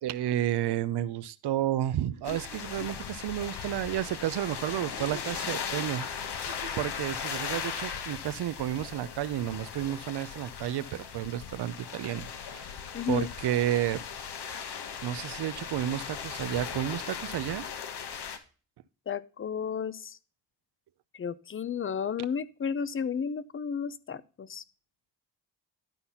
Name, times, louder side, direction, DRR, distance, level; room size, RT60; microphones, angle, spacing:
voice 1, 0.0-12.3 12.5-12.7 13.1-14.0 15.0-17.7, right 12 dB, 70° right, 17 dB, 0.7 m, -31 dB
sound 1, 2.1-2.2 2.5-2.6 4.8-6.9, right 6 dB, 50° right, 1.0 m, -48 dB
sound 2, 2.2-18.4, left 7 dB, 70° left, 1.4 m, -38 dB
voice 2, 12.9-13.3 19.1-20.2 21.1-24.6, left 7 dB, 30° left, 18 dB, 0.6 m, -33 dB
11.5 x 4.1 x 5.7 m, 0.36 s
cardioid pair, 95°, 42 cm